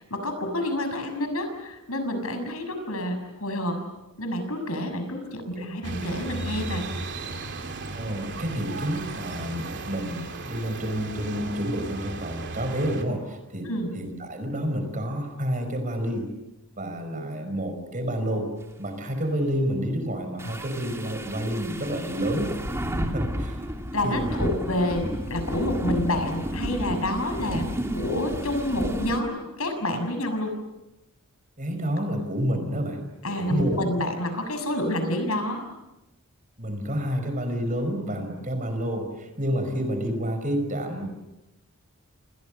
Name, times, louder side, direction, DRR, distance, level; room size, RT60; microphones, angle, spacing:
voice 1, 0.0-3.8 4.2-6.8 13.6-14.0 23.9-27.6 27.9-30.6 33.2-35.6 38.1-38.2, left 1 dB, 75° left, 7 dB, 6.6 m, -28 dB
sound 1, 5.8-13.0, right 2 dB, 50° right, 3.1 m, -35 dB
voice 2, 7.9-16.3 16.8-18.5 18.8-22.6 23.1-23.7 24.0-24.3 27.4-27.6 31.6-33.0 33.4-33.8 36.6-41.1, equal, 35° right, 7 dB, 5.3 m, -29 dB
sound 2, 20.4-29.2, equal, 10° right, 2.7 m, -31 dB
29.0 x 28.5 x 6.6 m, 0.98 s
head